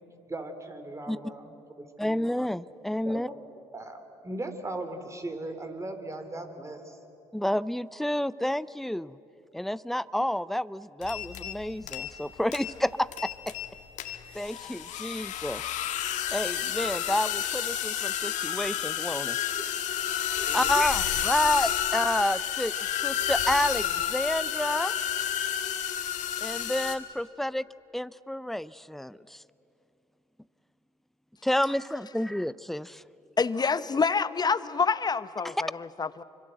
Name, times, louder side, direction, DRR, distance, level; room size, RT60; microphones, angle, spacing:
voice 1, 0.3-2.4 3.0-3.2 3.7-4.0 4.2-7.0 19.6-19.8 20.3-20.7, right 2 dB, 25° right, 7 dB, 3.4 m, -38 dB
voice 2, 2.0-3.3 7.3-9.2 9.5-13.5 14.3-15.7 16.3-19.4 20.5-22.7 23.0-24.9 26.4-27.6 27.9-29.4 31.4-33.0, left 1 dB, ahead, 18 dB, 0.6 m, -29 dB
sound 1, 11.0-11.6 11.8-12.3 12.5-12.7 13.1-13.7 14.0-27.0, left 10 dB, 70° left, 1.9 m, -30 dB
voice 3, 33.4-36.2, left 5 dB, 30° left, 15 dB, 1.0 m, -27 dB
25.5 x 25.0 x 7.9 m, 2.8 s
hypercardioid pair, 55°, 13 cm